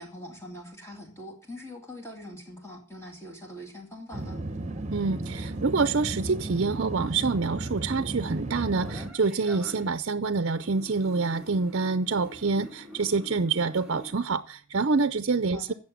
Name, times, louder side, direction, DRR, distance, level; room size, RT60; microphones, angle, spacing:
voice 1, 0.0-4.4 15.5-15.7, left 1 dB, 10° left, 1 dB, 2.3 m, -43 dB
sound 1, 4.1-9.1, right 2 dB, 35° right, 1.2 m, -34 dB
voice 2, 4.9-15.7, right 4 dB, 55° right, 12 dB, 0.6 m, -27 dB
sound 2, 8.8-10.0 10.4-14.1, left 1 dB, 5° right, 2.9 m, -46 dB
16.0 x 6.7 x 7.3 m, 0.41 s
head